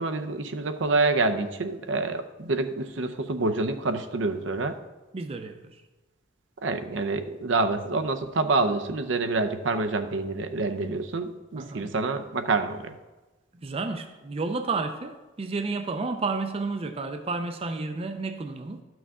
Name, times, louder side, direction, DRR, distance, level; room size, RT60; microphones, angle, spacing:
voice 1, 0.0-4.7 6.6-12.9, right 3 dB, 80° right, 0.7 m, -27 dB
voice 2, 5.1-5.8 11.6-11.9 13.5-18.8, right 3 dB, 30° right, 0.4 m, -31 dB
12.5 x 6.1 x 3.6 m
head